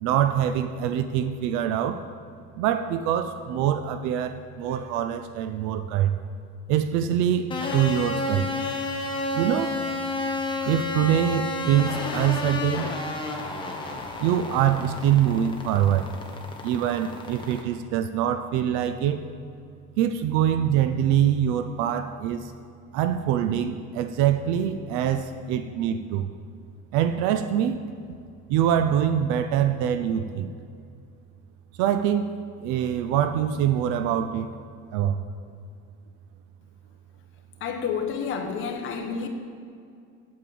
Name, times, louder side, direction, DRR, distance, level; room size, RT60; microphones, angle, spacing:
voice 1, 0.0-2.0 2.6-6.2 6.7-8.5 9.3-9.8 10.6-12.9 14.2-16.1 16.6-19.2 20.0-22.5 22.9-26.3 26.9-27.8 28.5-30.5 31.8-34.5 34.9-35.2, right 10 dB, 75° right, 10 dB, 0.6 m, -24 dB
sound 1, 7.5-17.6, left 2 dB, 15° left, 1.0 m, -31 dB
voice 2, 37.6-39.3, left 6 dB, 40° left, 4 dB, 1.2 m, -29 dB
8.6 x 8.6 x 7.7 m, 2.4 s
cardioid pair, 170°, 30 cm